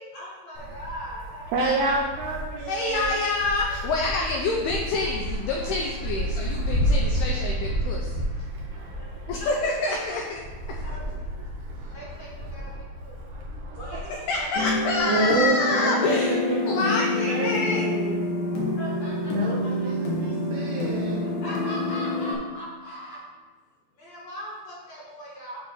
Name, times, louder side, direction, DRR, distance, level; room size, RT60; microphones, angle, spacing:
voice 1, 0.1-1.7 3.7-3.8 5.5-5.8 9.0-9.1 9.4-10.2 10.8-11.0 11.9-13.2 13.8-14.7 18.8-19.3 19.6-19.9 21.4-23.2 24.0-25.6, equal, 45° left, -8 dB, 2.6 m, -39 dB
Wind, 0.5-15.4, equal, 65° right, 2.1 m, -32 dB
voice 2, 1.5-3.2 6.7-7.1 13.9-14.0 15.1-18.3 19.3-21.3, right 3 dB, 85° right, -1 dB, 2.4 m, -29 dB
voice 3, 2.7-8.2 9.3-10.4 10.7-10.8 14.3-16.4 16.6-17.9, left 3 dB, 85° left, 0 dB, 2.2 m, -27 dB
sound 1, 14.6-22.4, left 1 dB, 65° left, 2.7 m, -27 dB
9.4 x 3.3 x 5.5 m, 1.4 s
omnidirectional pair, 5.3 m